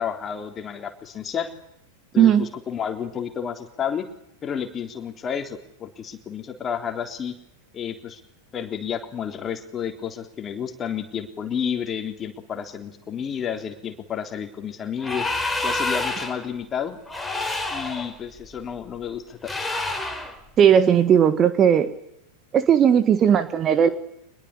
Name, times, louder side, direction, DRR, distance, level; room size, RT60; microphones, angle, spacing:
voice 1, 0.0-1.5 2.1-4.1 4.4-7.4 7.7-8.2 8.5-15.3 15.6-17.0 17.7-19.7, left 8 dB, 25° left, 5 dB, 3.6 m, -31 dB
voice 2, 2.2-2.5 20.6-21.9 22.5-23.9, right 8 dB, 25° right, 11 dB, 1.6 m, -17 dB
sound 1, 15.0-16.5 17.1-18.1 19.4-20.3, left 2 dB, 5° left, 4.6 m, -28 dB
25.5 x 21.0 x 8.6 m, 0.77 s
figure-of-eight pair, 90°, 0 cm